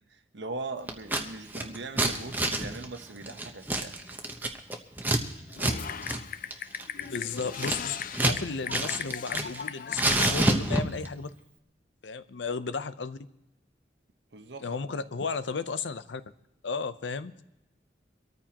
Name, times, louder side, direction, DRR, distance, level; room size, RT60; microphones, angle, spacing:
voice 1, 0.1-4.0 14.3-14.8, right 3 dB, 75° right, 7 dB, 1.1 m, -40 dB
Scissors, 0.9-1.2 1.5-5.2 5.5-5.8 6.0-6.2 6.5-8.4 8.7-9.6 9.9-11.1, right 1 dB, 10° right, 0.9 m, -28 dB
Typing, 5.6-10.3, left 8 dB, 50° left, 0.4 m, -37 dB
voice 2, 7.1-11.3 12.0-13.2 14.6-16.2 16.6-17.4, left 5 dB, 90° left, 13 dB, 0.7 m, -34 dB
24.0 x 13.5 x 2.9 m, 0.89 s
head